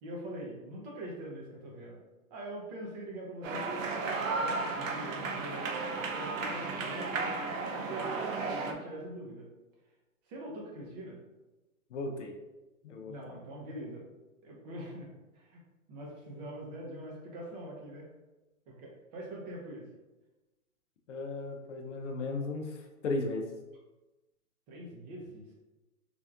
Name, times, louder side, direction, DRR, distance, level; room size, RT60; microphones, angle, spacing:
voice 1, 0.0-2.0 2.3-9.5 10.3-11.2 13.0-14.0 14.4-15.6 15.9-18.1 18.7-19.9 24.7-25.5, right 1 dB, 30° right, -2 dB, 0.7 m, -43 dB
sound 1, 3.4-8.7, right 3 dB, 60° right, 0.7 m, -34 dB
voice 2, 11.9-12.3 12.8-13.1 21.1-22.8 23.0-23.4, left 2 dB, 55° left, 2 dB, 0.7 m, -35 dB
3.5 x 3.2 x 2.4 m, 1.1 s
hypercardioid pair, 130°, 44 cm